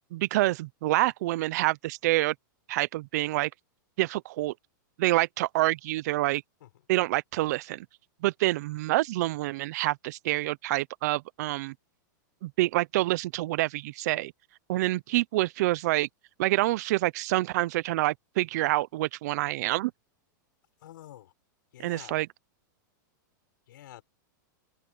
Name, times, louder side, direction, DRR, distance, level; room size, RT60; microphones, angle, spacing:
voice 1, 0.1-2.3 2.7-3.5 4.0-4.5 5.0-6.4 6.9-7.9 8.2-11.7 12.4-14.3 14.7-16.1 16.4-19.9 21.8-22.3, right 18 dB, 55° right, 0.6 m, -27 dB
voice 2, 20.8-21.3 21.7-22.2 23.7-24.0, left 13 dB, 70° left, 6.2 m, -48 dB
open air
supercardioid pair, 155°, 11 cm